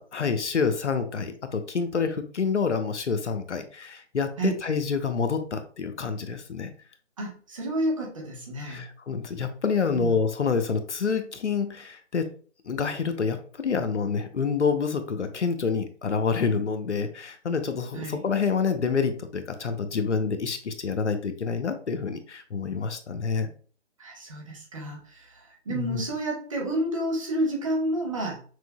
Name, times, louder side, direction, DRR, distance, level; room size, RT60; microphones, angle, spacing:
voice 1, 0.0-6.7 8.6-12.3 12.7-23.5 25.7-26.0, left 5 dB, 70° left, 9 dB, 0.7 m, -27 dB
voice 2, 7.2-8.8 9.8-10.1 17.9-18.2 24.0-28.4, right 1 dB, 25° right, -1 dB, 1.1 m, -30 dB
6.0 x 2.7 x 2.3 m, 0.42 s
figure-of-eight pair, 155°, 36 cm